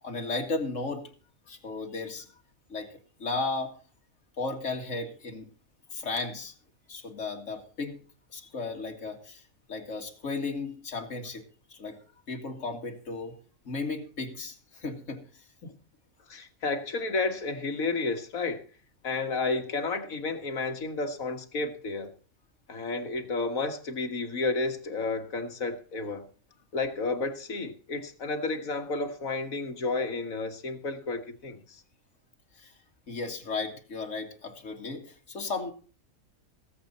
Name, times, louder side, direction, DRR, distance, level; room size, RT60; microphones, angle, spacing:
voice 1, 0.0-1.1 1.5-2.3 2.7-2.9 3.2-3.7 4.4-5.5 5.9-6.5 6.9-8.0 8.3-11.4 11.7-12.0 12.3-13.4 13.6-15.4 32.5-32.7 33.1-35.7, left 3 dB, 60° left, 2.4 m, -35 dB
voice 2, 16.3-18.6 19.0-22.1 22.7-26.2 26.7-31.8, left 3 dB, 75° left, 2.1 m, -31 dB
18.5 x 8.0 x 4.2 m
omnidirectional pair, 1.4 m